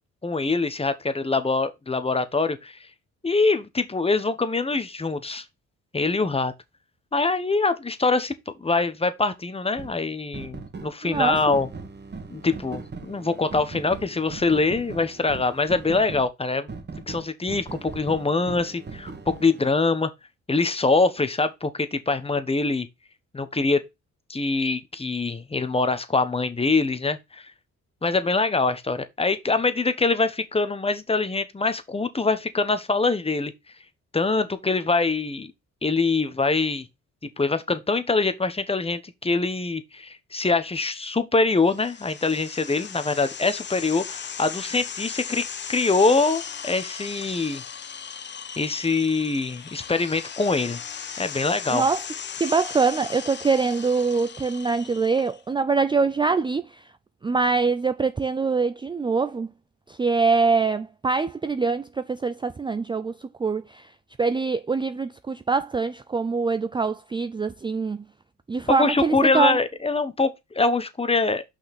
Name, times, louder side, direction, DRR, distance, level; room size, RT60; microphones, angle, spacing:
voice 1, 0.2-2.8 3.2-5.4 5.9-6.5 7.1-11.7 12.3-16.7 17.1-20.1 20.5-22.9 23.3-23.8 24.3-27.5 28.0-33.5 34.1-35.5 35.8-36.9 37.4-47.6 48.6-50.8 51.2-51.8 68.7-71.4, left 3 dB, 20° left, 1.2 m, -24 dB
sound 1, 9.8-9.9 10.3-16.3 16.7-19.7, right 4 dB, 35° right, 2.0 m, -39 dB
voice 2, 11.0-11.4 51.7-52.0 52.4-56.8 57.2-59.5 59.9-63.9 64.2-68.0 68.5-69.6, right 4 dB, 15° right, 0.4 m, -24 dB
sound 2, 41.6-55.4, left 7 dB, 35° left, 0.8 m, -37 dB
5.8 x 5.8 x 4.2 m
cardioid pair, 90°, 30 cm